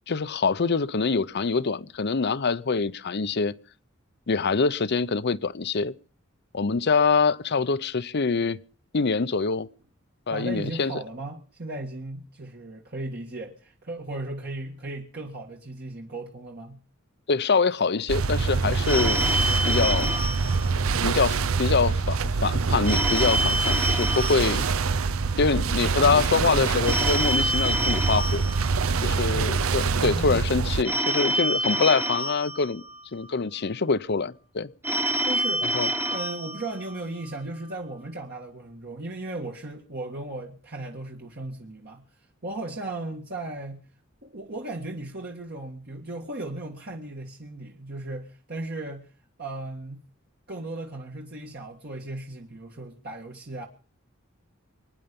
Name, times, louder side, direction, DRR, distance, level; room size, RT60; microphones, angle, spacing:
voice 1, 0.1-3.5 4.3-5.9 6.5-8.6 8.9-9.7 10.3-10.9 17.3-19.3 19.6-20.2 21.0-24.6 25.4-28.4 29.0-32.8 33.1-34.7 35.7-35.9, left 4 dB, 55° left, 0.7 m, -25 dB
voice 2, 10.3-16.8 29.1-29.5 30.0-30.6 35.2-35.7 36.1-43.8 44.2-49.1 49.4-50.1 50.5-53.7, right 2 dB, 50° right, 1.8 m, -36 dB
sound 1, 18.1-30.8, right 4 dB, 85° right, 0.7 m, -25 dB
Telephone, 18.8-21.3 22.8-25.3 26.8-29.3 30.8-33.3 34.8-37.3, right 1 dB, 10° right, 1.2 m, -28 dB
25.0 x 10.0 x 5.3 m
head